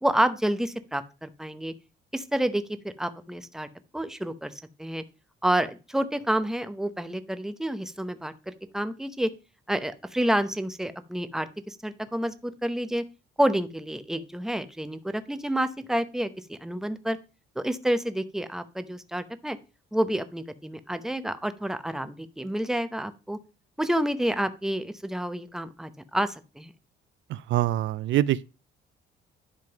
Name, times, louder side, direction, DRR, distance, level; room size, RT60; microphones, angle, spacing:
voice 1, 0.0-1.7 2.1-3.7 3.9-4.5 4.8-5.0 5.4-9.3 9.7-13.0 13.4-17.2 17.6-19.6 19.9-23.4 23.8-26.7, right 1 dB, ahead, 0.8 m, -29 dB
voice 2, 27.5-28.4, right 14 dB, 70° right, 0.4 m, -24 dB
10.5 x 3.7 x 5.8 m
cardioid pair, 90°, 20 cm